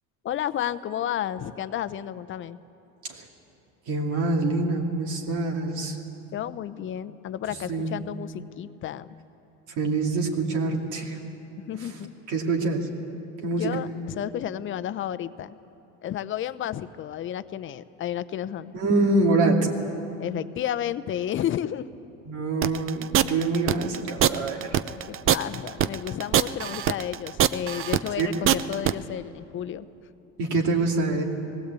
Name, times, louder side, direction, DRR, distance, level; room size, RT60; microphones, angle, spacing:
voice 1, 0.2-2.6 6.3-9.1 11.7-12.1 13.5-15.6 16.0-18.7 20.2-21.9 25.1-29.9, left 10 dB, 40° left, 13 dB, 0.7 m, -32 dB
voice 2, 3.9-6.0 7.7-7.9 9.8-11.2 12.3-12.9 13.4-13.7 18.7-19.7 22.3-24.8 28.2-28.3 30.4-31.2, right 3 dB, 65° right, 1 dB, 2.6 m, -25 dB
sound 1, 22.6-28.9, right 11 dB, 40° right, 0.6 m, -23 dB
19.5 x 16.5 x 8.3 m, 2.8 s
supercardioid pair, 115°, 32 cm